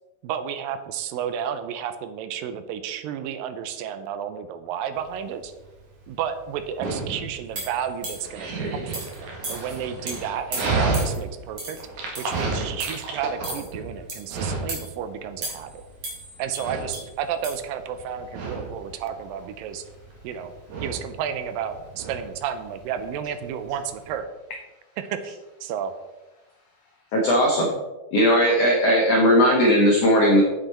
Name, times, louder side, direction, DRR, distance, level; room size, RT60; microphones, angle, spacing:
voice 1, 0.2-5.5 6.1-9.1 9.5-11.8 12.2-15.7 16.4-19.9 20.2-20.5 20.8-24.3 25.0-25.4 25.6-25.9, right 8 dB, 80° right, 10 dB, 2.3 m, -32 dB
Dog, 5.0-24.2, right 3 dB, 60° right, 2.9 m, -32 dB
sound 1, 7.5-8.4 8.9-9.2 9.4-9.8 10.1-10.2 10.5-11.2 11.6-11.8 12.1-12.4 12.8-13.0 13.4-13.7 14.1-14.3 14.7-14.9 15.4-15.8 16.0-17.0 17.4-17.5, right 2 dB, 35° right, 3.3 m, -35 dB
voice 2, 18.0-21.2 21.7-22.3 23.4-23.8 24.5-25.3 25.6-27.7, left 3 dB, 85° left, 2 dB, 1.5 m, -52 dB
voice 3, 27.1-27.7 28.1-30.4, equal, 60° left, -1 dB, 1.8 m, -18 dB
8.5 x 7.8 x 4.3 m, 1.1 s
omnidirectional pair, 4.2 m